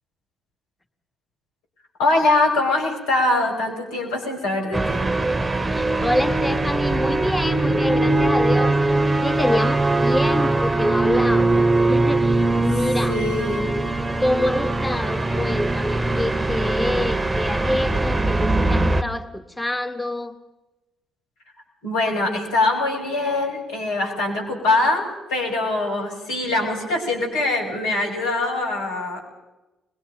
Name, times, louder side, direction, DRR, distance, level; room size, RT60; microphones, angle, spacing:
voice 1, 2.0-5.0 13.1-13.7 21.8-29.2, left 2 dB, 80° left, 1 dB, 6.0 m, -23 dB
sound 1, 4.7-19.0, right 2 dB, 20° right, 1.2 m, -21 dB
voice 2, 5.6-8.8 9.2-13.2 14.2-20.4, left 1 dB, 10° left, 7 dB, 1.9 m, -26 dB
25.5 x 22.0 x 5.4 m, 1.0 s
hypercardioid pair, 50°, 0 cm